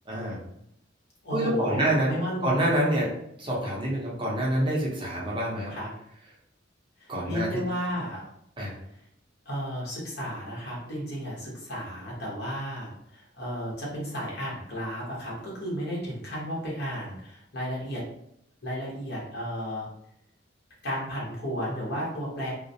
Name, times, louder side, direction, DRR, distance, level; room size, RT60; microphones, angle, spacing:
voice 1, 0.1-0.4 1.3-2.1 2.4-3.1 3.4-5.7 7.1-7.6 8.6-8.7, right 1 dB, 25° right, -4 dB, 0.6 m, -26 dB
voice 2, 1.2-2.6 5.7-5.9 7.0-8.2 9.4-18.0 18.6-19.9 20.8-22.5, equal, 60° left, -5 dB, 1.0 m, -33 dB
2.3 x 2.0 x 2.6 m, 0.74 s
head